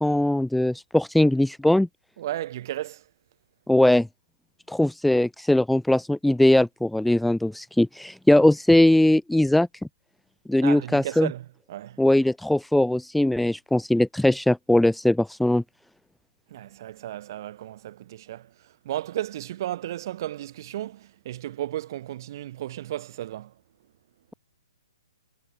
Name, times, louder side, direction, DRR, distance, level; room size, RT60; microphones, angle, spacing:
voice 1, 0.0-1.9 3.7-4.1 4.7-9.7 10.5-11.3 12.0-15.6, left 1 dB, ahead, 0.7 m, -20 dB
voice 2, 2.2-3.0 10.6-12.0 16.5-18.5 18.8-23.5, right 13 dB, 40° right, 3.3 m, -34 dB
figure-of-eight pair, 125°, 3 cm